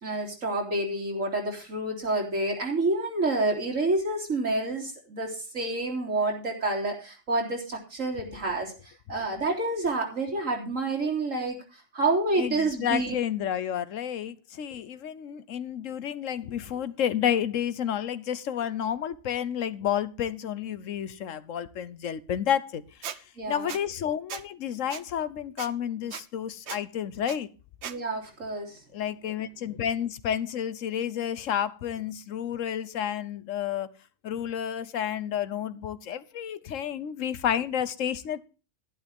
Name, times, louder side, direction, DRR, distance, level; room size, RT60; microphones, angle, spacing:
voice 1, 0.0-8.7 9.1-11.6 11.9-13.2 23.4-23.7 27.8-28.8, right 2 dB, 80° right, 3.8 m, -28 dB
voice 2, 12.4-23.2 23.5-27.5 28.9-33.9 34.2-38.4, left 9 dB, 80° left, 1.2 m, -30 dB
Squeak, 23.0-23.2 23.7-23.8 24.3-24.4 24.9-25.0 25.6-25.7 26.1-26.2 26.7-26.8 27.3-27.4 27.8-28.0, right 9 dB, 60° right, 1.0 m, -37 dB
11.5 x 11.5 x 3.5 m
omnidirectional pair, 1.3 m